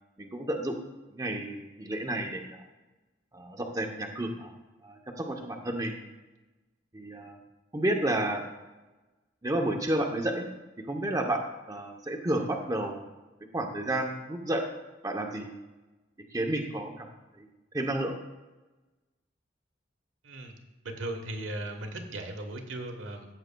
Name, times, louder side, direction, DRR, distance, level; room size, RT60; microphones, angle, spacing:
voice 1, 0.2-0.7 1.1-2.6 3.3-4.5 4.8-6.0 6.9-7.4 7.7-8.4 9.4-10.5 10.9-11.4 11.7-13.0 13.5-14.6 15.0-15.5 16.3-17.1 17.4-17.5 17.7-18.1, right 1 dB, 20° right, 2 dB, 0.7 m, -31 dB
voice 2, 20.8-23.3, right 1 dB, 85° right, 4 dB, 1.2 m, -37 dB
14.0 x 7.5 x 2.3 m, 1.1 s
head